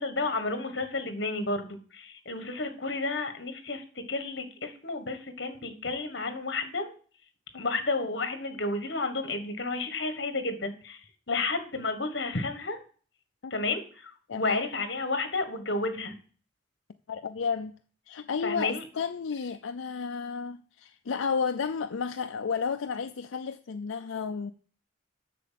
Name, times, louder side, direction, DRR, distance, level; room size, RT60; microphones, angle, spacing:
voice 1, 0.0-7.0 7.5-11.0 11.3-12.8 13.5-16.2 18.4-18.8, left 3 dB, 55° left, 1.5 m, -31 dB
voice 2, 14.3-14.6 17.1-17.7 18.1-24.5, left 6 dB, 80° left, 0.5 m, -32 dB
7.8 x 6.7 x 7.5 m
head